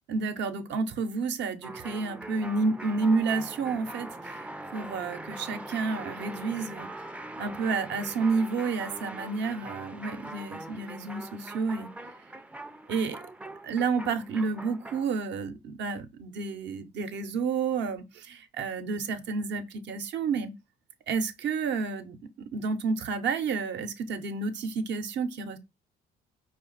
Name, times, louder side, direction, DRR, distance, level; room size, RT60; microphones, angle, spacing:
voice 1, 0.1-4.5 4.7-6.9 7.4-11.9 12.9-13.2 13.6-20.5 21.1-22.2 22.5-25.6, right 4 dB, 60° right, 0.8 m, -30 dB
sound 1, 1.6-15.2, right 1 dB, 5° right, 0.4 m, -42 dB
5.0 x 2.3 x 3.9 m
hypercardioid pair, 60°, 20 cm